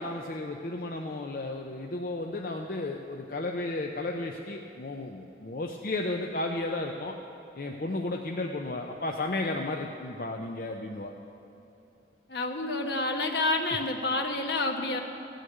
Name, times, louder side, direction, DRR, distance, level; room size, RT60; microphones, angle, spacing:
voice 1, 0.0-7.2 7.6-11.1, left 2 dB, 50° left, 2 dB, 0.6 m, -33 dB
voice 2, 12.3-15.0, left 2 dB, 70° left, 3 dB, 1.2 m, -29 dB
16.0 x 6.5 x 9.2 m, 2.9 s
head